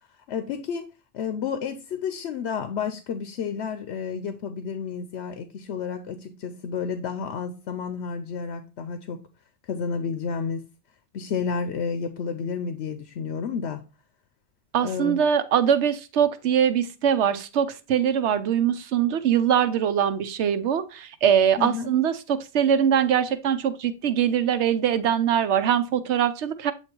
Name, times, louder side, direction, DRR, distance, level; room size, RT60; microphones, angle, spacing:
voice 1, 0.3-9.2 9.7-10.6 11.1-13.8 14.8-15.2 21.6-21.9, left 6 dB, 85° left, 0.9 m, -31 dB
voice 2, 14.7-26.7, right 8 dB, 90° right, 1.0 m, -22 dB
8.0 x 3.0 x 4.4 m
omnidirectional pair, 1.1 m